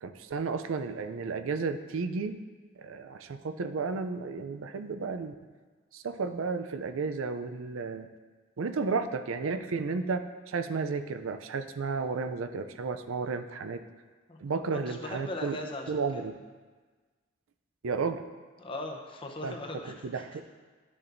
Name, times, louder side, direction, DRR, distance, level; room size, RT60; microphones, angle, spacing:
voice 1, 0.0-2.4 2.8-5.3 5.9-8.1 8.6-13.8 14.4-15.6 15.9-16.4 17.8-18.3 19.4-19.6 20.0-20.4, right 4 dB, 85° right, 9 dB, 0.5 m, -33 dB
voice 2, 14.7-16.2 18.6-20.4, left 2 dB, 25° left, 2 dB, 0.7 m, -39 dB
12.0 x 6.9 x 2.6 m, 1.4 s
head